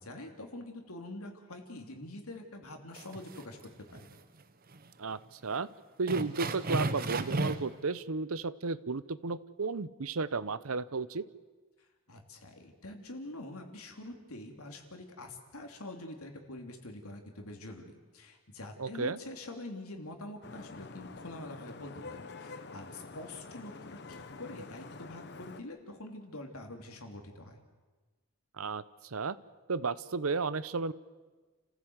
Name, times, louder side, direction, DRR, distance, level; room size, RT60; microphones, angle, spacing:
voice 1, 0.0-4.2 12.1-27.6, left 1 dB, 85° left, 3 dB, 3.2 m, -45 dB
sound 1, 3.0-3.6 4.0-4.1 4.7-4.8 5.2-5.3 6.1-7.8, right 2 dB, 40° right, 1.0 m, -33 dB
voice 2, 5.0-5.7 6.0-11.2 18.8-19.2 28.6-29.4 29.7-30.9, right 4 dB, 75° right, 16 dB, 0.8 m, -33 dB
Vehicle horn car horn honking / Traffic noise roadway noise, 20.4-25.6, left 3 dB, 50° left, 1.0 m, -47 dB
30.0 x 15.5 x 8.1 m, 1.3 s
head